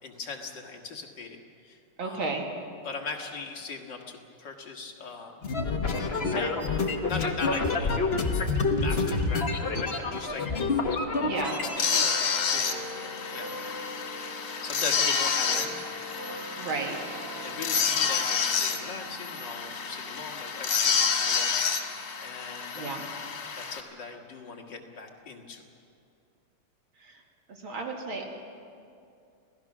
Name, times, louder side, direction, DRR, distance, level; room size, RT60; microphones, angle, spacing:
voice 1, 0.0-2.3 2.8-5.4 6.2-6.7 7.1-10.4 11.4-13.9 14.6-15.7 16.1-16.6 17.4-23.0 23.5-25.7, left 4 dB, 55° left, 2 dB, 2.2 m, -40 dB
voice 2, 2.0-2.4 11.2-11.5 16.6-17.0 22.7-23.0 27.0-27.2 27.5-28.3, right 3 dB, 70° right, 1 dB, 2.9 m, -33 dB
sound 1, 5.4-12.1, left 3 dB, 35° left, 1.3 m, -28 dB
sound 2, 11.0-23.9 24.6-24.7, right 1 dB, 85° right, 2.6 m, -44 dB
sound 3, 11.8-23.8, left 6 dB, 75° left, 2.6 m, -29 dB
26.5 x 17.0 x 6.1 m, 2.5 s
omnidirectional pair, 2.3 m